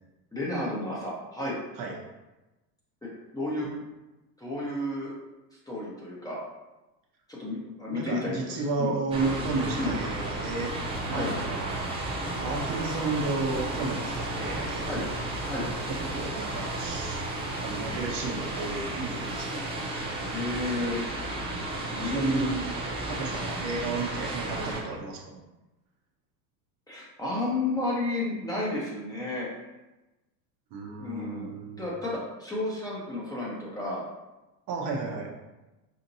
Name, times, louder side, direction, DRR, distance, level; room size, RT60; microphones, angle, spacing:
voice 1, 0.3-1.6 3.0-3.7 4.4-5.1 5.7-6.4 7.3-8.9 9.7-10.0 11.1-11.3 14.9-15.0 15.5-15.7 20.2-21.0 21.9-22.5 26.9-29.5 31.0-31.5 31.8-34.0, left 2 dB, 5° left, -6 dB, 0.8 m, -32 dB
voice 2, 7.9-10.7 11.1-14.9 15.9-17.2 17.6-19.7 22.0-22.7 23.1-25.4 30.7-31.8 34.7-35.3, right 3 dB, 45° right, -1 dB, 0.8 m, -33 dB
sound 1, 9.1-24.8, right 2 dB, 15° right, 0.3 m, -33 dB
4.2 x 2.8 x 2.7 m, 1.0 s
hypercardioid pair, 110°, 50 cm